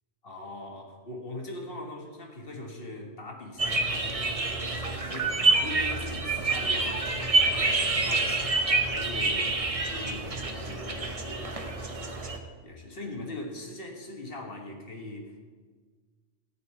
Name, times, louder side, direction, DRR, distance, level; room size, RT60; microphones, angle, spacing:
voice 1, 0.2-12.4 12.6-15.4, left 2 dB, 50° left, 2 dB, 2.0 m, -41 dB
sound 1, 3.6-12.4, right 3 dB, 30° right, 1.0 m, -27 dB
14.5 x 5.4 x 9.1 m, 1.5 s
omnidirectional pair, 1.2 m